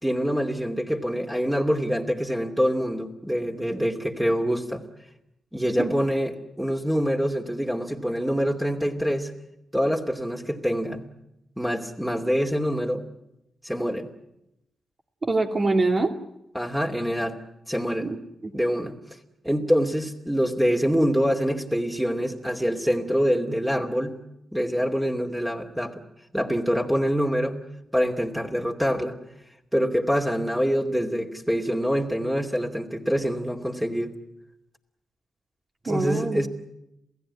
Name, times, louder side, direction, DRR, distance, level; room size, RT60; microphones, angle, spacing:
voice 1, 0.0-4.8 5.5-9.3 9.7-11.0 11.6-13.0 13.6-14.1 16.5-17.4 17.7-18.1 18.5-19.0 19.4-24.2 24.5-26.0 26.3-27.6 27.9-29.2 29.7-34.2 35.8-36.5, equal, 5° right, 1 dB, 2.7 m, -25 dB
voice 2, 15.2-16.1 18.0-18.5 35.9-36.4, right 3 dB, 40° right, 3 dB, 2.6 m, -24 dB
28.0 x 16.5 x 9.8 m, 0.86 s
cardioid pair, 60°, 0 cm